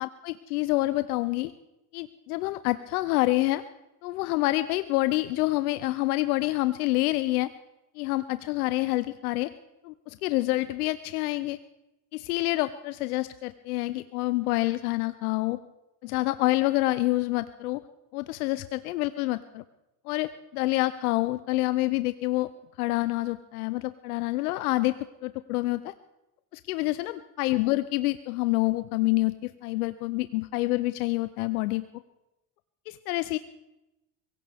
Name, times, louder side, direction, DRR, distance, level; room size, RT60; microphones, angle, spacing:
voice 1, 0.0-1.5 1.9-3.6 4.0-7.5 8.0-9.5 9.8-11.6 12.1-15.6 16.0-17.8 18.1-19.6 20.1-22.5 22.8-24.9 25.2-25.9 26.5-31.8 32.9-33.4, left 19 dB, 80° left, 13 dB, 0.7 m, -27 dB
23.5 x 16.5 x 3.5 m, 0.94 s
hypercardioid pair, 85°, 43 cm